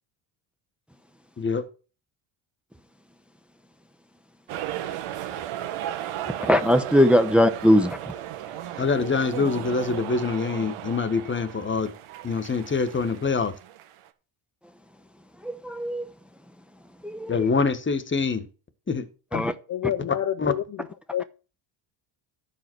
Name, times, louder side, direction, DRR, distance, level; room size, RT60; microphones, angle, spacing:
sound 1, 4.5-14.1, right 12 dB, 85° right, 1.5 m, -35 dB
voice 1, 6.4-8.1 15.4-16.0 17.0-17.4 19.3-19.5, equal, ahead, 1.0 m, -20 dB
voice 2, 8.8-11.9 12.2-13.6 17.3-18.5 18.9-19.1 20.4-20.5, left 4 dB, 25° left, 1.5 m, -25 dB
voice 3, 19.3-20.9 21.1-21.2, left 11 dB, 40° left, 0.6 m, -29 dB
13.0 x 4.9 x 6.2 m
cardioid pair, 110°, 49 cm